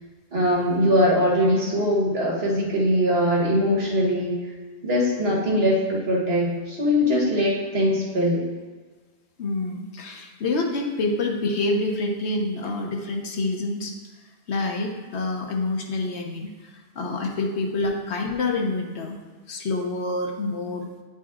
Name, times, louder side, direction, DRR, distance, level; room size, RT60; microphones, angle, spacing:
voice 1, 0.3-4.4 4.8-8.4, equal, 70° right, -4 dB, 1.7 m, -21 dB
voice 2, 9.4-13.9 14.5-19.2 19.5-20.9, left 2 dB, 85° left, 2 dB, 1.2 m, -27 dB
9.5 x 4.1 x 3.6 m, 1.4 s
omnidirectional pair, 1.1 m